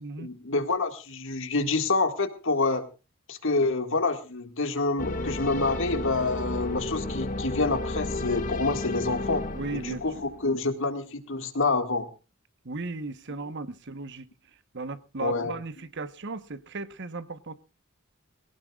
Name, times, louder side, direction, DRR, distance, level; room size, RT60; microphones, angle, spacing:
voice 1, 0.0-2.9 3.3-9.4 9.7-12.1 15.2-15.6, left 3 dB, 60° left, 2.0 m, -27 dB
sound 1, 5.0-10.5, left 2 dB, 40° left, 2.0 m, -33 dB
voice 2, 9.5-10.0 12.6-14.3 14.7-17.5, right 3 dB, 55° right, 1.1 m, -36 dB
22.0 x 17.5 x 2.4 m
head